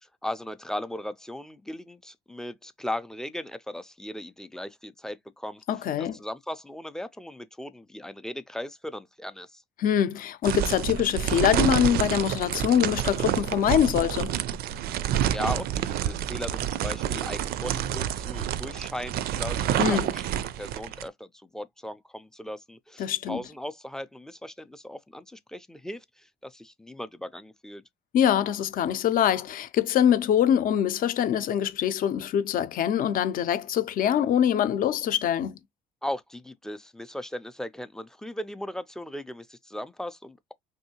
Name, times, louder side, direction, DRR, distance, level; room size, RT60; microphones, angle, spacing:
voice 1, 0.0-9.6 14.9-20.2 20.6-27.8 36.0-40.5, left 1 dB, 5° left, 0.4 m, -37 dB
voice 2, 5.7-6.2 9.8-14.4 19.8-20.1 23.0-23.4 28.1-35.6, left 9 dB, 55° left, 0.5 m, -24 dB
sound 1, 10.4-21.0, right 11 dB, 65° right, 0.4 m, -28 dB
3.3 x 2.7 x 2.8 m
cardioid pair, 110°, 17 cm